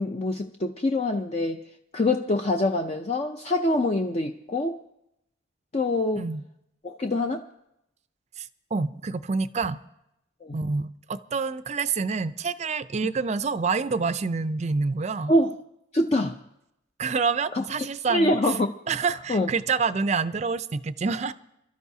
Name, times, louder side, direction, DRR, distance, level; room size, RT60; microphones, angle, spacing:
voice 1, 0.0-1.7 1.9-4.8 5.7-6.3 6.8-7.4 10.4-10.6 15.3-15.6 15.9-16.4 17.5-17.6 18.1-18.7 19.3-19.5, left 2 dB, 35° left, 4 dB, 0.5 m, -25 dB
voice 2, 8.4-9.8 10.5-15.3 17.0-18.3 18.9-21.3, right 4 dB, 35° right, 14 dB, 0.4 m, -27 dB
27.0 x 13.0 x 2.7 m, 0.82 s
head